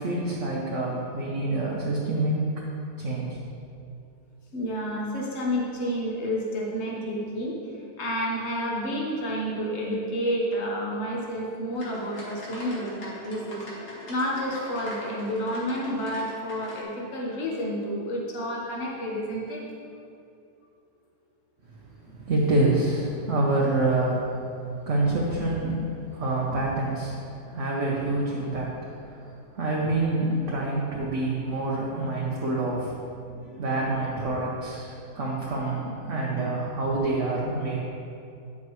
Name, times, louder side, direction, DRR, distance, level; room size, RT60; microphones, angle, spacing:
voice 1, 0.0-2.4 3.0-3.4 22.0-24.2 24.9-33.0 33.3-37.8, right 2 dB, 55° right, -4 dB, 1.1 m, -27 dB
voice 2, 4.5-19.6, equal, 45° left, -3 dB, 1.5 m, -30 dB
sound 1, 11.7-16.8, left 1 dB, 75° left, 2.1 m, -42 dB
9.3 x 7.4 x 3.1 m, 2.5 s
omnidirectional pair, 1.7 m